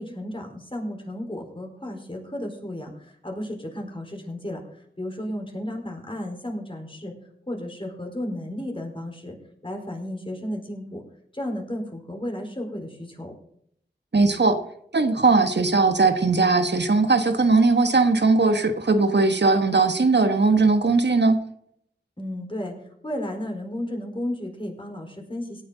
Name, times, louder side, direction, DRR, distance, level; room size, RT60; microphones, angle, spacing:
voice 1, 0.0-4.6 5.0-7.1 7.5-9.4 9.6-11.0 11.3-13.3 22.2-22.7 23.0-25.6, left 1 dB, 30° left, 2 dB, 4.2 m, -33 dB
voice 2, 14.1-14.6 14.9-21.4, right 3 dB, 65° right, 8 dB, 1.3 m, -19 dB
17.5 x 9.4 x 4.0 m, 0.69 s
wide cardioid pair, 40°, 19 cm